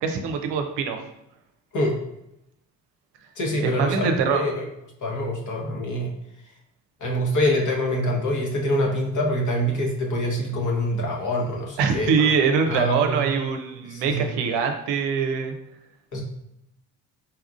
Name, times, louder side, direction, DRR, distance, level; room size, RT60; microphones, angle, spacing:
voice 1, 0.0-1.0 3.6-4.4 11.8-15.5, right 6 dB, 60° right, 5 dB, 0.7 m, -23 dB
voice 2, 3.4-4.6 5.0-6.1 7.0-12.3 12.7-13.2 13.8-14.3 16.1-16.2, equal, 40° left, -1 dB, 1.2 m, -25 dB
4.3 x 3.5 x 2.5 m, 0.84 s
hypercardioid pair, 50°, 47 cm